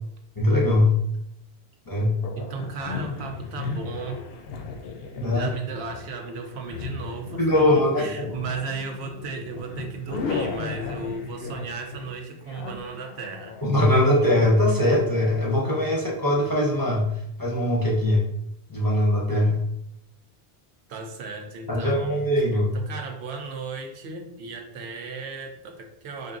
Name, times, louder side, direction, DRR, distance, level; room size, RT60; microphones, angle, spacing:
voice 1, 0.4-1.0 1.9-2.2 5.1-5.5 7.4-8.3 13.6-17.1 17.4-18.2 18.7-19.6 21.7-22.8, left 1 dB, 25° left, -4 dB, 0.7 m, -21 dB
sound 1, 2.2-14.9, left 4 dB, 70° left, 0.8 m, -36 dB
voice 2, 2.4-4.2 5.3-13.6 20.9-22.2 22.7-26.4, right 4 dB, 90° right, 4 dB, 0.9 m, -35 dB
4.6 x 2.5 x 2.4 m, 0.77 s
omnidirectional pair, 1.1 m